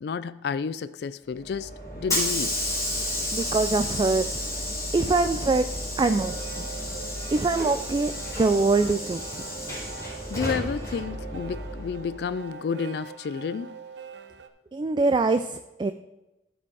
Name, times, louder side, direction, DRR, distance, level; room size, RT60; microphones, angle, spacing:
voice 1, 0.0-2.6 10.3-13.8, left 6 dB, 65° left, 0.3 m, -31 dB
Hiss / Sliding door, 1.4-12.2, left 1 dB, 20° left, 3.1 m, -32 dB
voice 2, 3.3-4.3 4.9-5.7 6.0-6.7 7.3-9.4 14.7-15.9, right 3 dB, 25° right, 0.3 m, -24 dB
sound 1, 5.8-14.5, right 6 dB, 85° right, 0.8 m, -43 dB
13.0 x 5.1 x 4.7 m
head